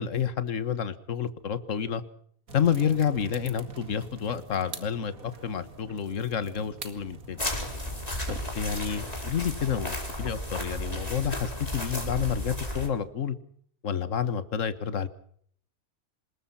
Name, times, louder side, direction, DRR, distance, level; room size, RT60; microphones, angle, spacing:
voice 1, 0.0-2.0 2.5-7.5 8.3-13.4 13.8-15.1, left 8 dB, 65° left, 13 dB, 1.7 m, -29 dB
sound 1, 2.5-8.4, right 3 dB, 85° right, 2.8 m, -44 dB
sound 2, 7.4-12.9, left 1 dB, 25° left, 4.3 m, -33 dB
26.5 x 21.0 x 5.8 m, 0.62 s
omnidirectional pair, 1.4 m